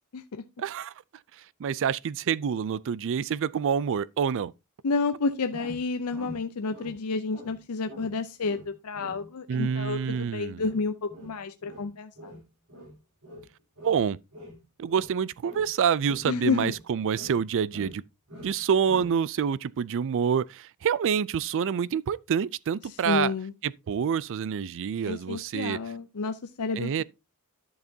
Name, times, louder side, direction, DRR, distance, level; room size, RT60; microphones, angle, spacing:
voice 1, 0.6-0.9 1.6-4.5 9.5-10.7 13.8-14.2 14.8-18.0 18.4-23.3 23.6-25.8 26.8-27.0, right 7 dB, 60° right, 0.4 m, -27 dB
voice 2, 4.8-12.4 16.2-16.7 23.1-23.5 25.1-27.0, left 4 dB, 75° left, 0.6 m, -30 dB
sound 1, 5.5-7.0 7.3-7.6 7.8-8.1 8.4-14.0 14.3-15.2 15.4-16.9 17.1-18.0 18.3-18.6 18.9-19.2, equal, 85° right, 3.7 m, -45 dB
11.0 x 6.6 x 2.7 m
head